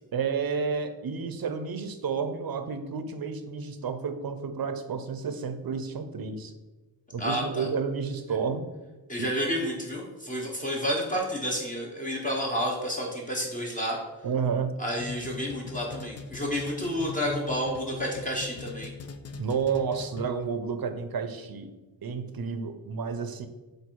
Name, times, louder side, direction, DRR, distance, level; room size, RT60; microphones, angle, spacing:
voice 1, 0.1-6.5 7.1-8.7 9.2-9.3 14.2-14.7 19.4-21.7 22.0-23.5, right 6 dB, 60° right, 8 dB, 0.7 m, -31 dB
voice 2, 7.2-7.7 9.1-14.0 14.8-18.9, equal, 20° left, -2 dB, 1.1 m, -30 dB
sound 1, 15.0-20.5, left 4 dB, 40° left, 0.5 m, -40 dB
7.9 x 2.7 x 4.6 m, 1.2 s
wide cardioid pair, 125°, 40 cm